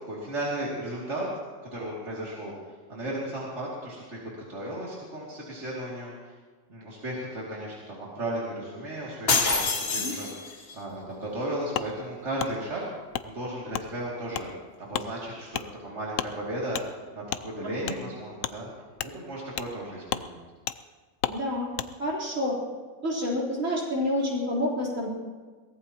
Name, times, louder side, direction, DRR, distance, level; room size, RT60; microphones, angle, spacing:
voice 1, 0.1-1.3 1.7-2.5 2.9-6.3 6.7-12.8 13.2-14.5 14.8-18.7 19.0-20.4, right 1 dB, 65° right, -6 dB, 3.1 m, -35 dB
sound 1, 9.3-10.7, left 4 dB, 50° left, 1.5 m, -26 dB
Wood, 11.7-11.9 12.4-12.5 13.1-13.3 13.7-13.9 14.3-14.5 14.9-15.1 15.5-15.7 16.1-16.3 16.7-16.9 17.3-17.4 17.8-18.0 18.4-18.5 19.0-19.1 19.6-19.7 20.1-20.3 20.7-20.8 21.2-21.4 21.7-21.9, left 10 dB, 90° left, 1.0 m, -31 dB
voice 2, 21.3-21.7 22.0-22.5 23.0-25.1, left 1 dB, 85° right, -5 dB, 4.2 m, -28 dB
23.0 x 17.5 x 3.0 m, 1.4 s
omnidirectional pair, 1.3 m